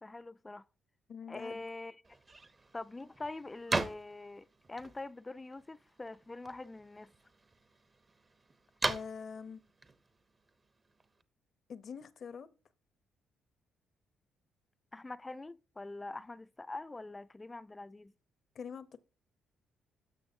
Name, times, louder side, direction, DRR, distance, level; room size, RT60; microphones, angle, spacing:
voice 1, 0.0-0.6 1.3-2.0 2.7-7.1 14.9-18.1, left 2 dB, 20° left, 0.4 m, -44 dB
voice 2, 1.1-1.6 8.9-9.6 11.7-12.5 18.5-19.0, left 6 dB, 55° left, 0.7 m, -44 dB
sound 1, 2.0-11.2, right 3 dB, 30° right, 0.8 m, -41 dB
13.0 x 6.1 x 2.7 m
cardioid pair, 90°, 0 cm